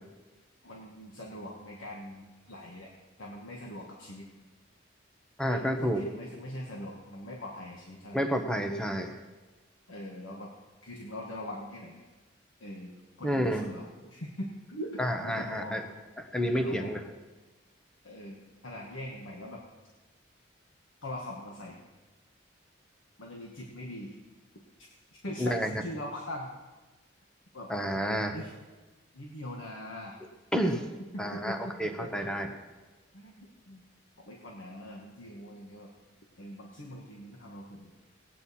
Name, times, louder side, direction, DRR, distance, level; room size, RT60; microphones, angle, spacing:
voice 1, 0.6-2.9 3.2-4.3 5.4-8.2 9.9-10.5 10.8-12.0 12.6-15.9 16.4-16.9 18.0-19.6 21.0-21.8 23.2-24.2 24.8-26.5 27.5-27.7 28.3-28.5 29.1-30.2 31.0-31.7 32.0-32.3 33.1-33.8 34.2-35.9 36.4-37.9, left 1 dB, 80° left, -1 dB, 1.5 m, -42 dB
voice 2, 5.4-6.0 8.1-9.1 13.2-13.6 15.0-15.8 16.2-17.0 25.4-25.7 27.7-28.4 30.5-30.8 31.2-32.5, equal, 5° left, 4 dB, 1.0 m, -29 dB
19.0 x 9.0 x 4.2 m, 1.2 s
head